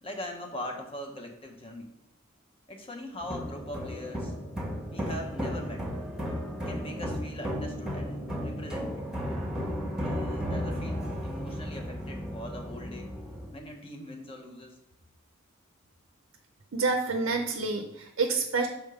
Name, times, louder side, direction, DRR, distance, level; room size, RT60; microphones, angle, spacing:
voice 1, 0.0-1.9 2.7-4.3 4.9-5.9 6.7-9.0 10.0-13.1 13.5-14.8, left 1 dB, 25° left, 2 dB, 1.0 m, -41 dB
sound 1, 3.2-13.5, equal, 5° right, 1.1 m, -34 dB
voice 2, 16.7-18.7, right 4 dB, 85° right, 4 dB, 0.6 m, -28 dB
6.7 x 3.6 x 4.9 m, 0.85 s
head